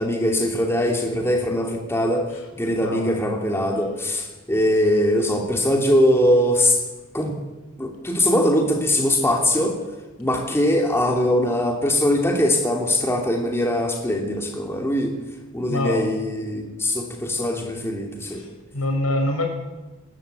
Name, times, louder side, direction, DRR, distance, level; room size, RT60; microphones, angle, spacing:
voice 1, 0.0-2.3 2.5-6.8 7.1-7.3 7.8-9.8 10.2-15.1 15.5-18.4, left 1 dB, 10° left, 2 dB, 2.8 m, -21 dB
voice 2, 2.8-3.2 15.7-16.1 18.3-18.5 18.7-19.5, left 1 dB, 85° left, 4 dB, 5.7 m, -24 dB
20.0 x 18.5 x 8.4 m, 1.1 s
head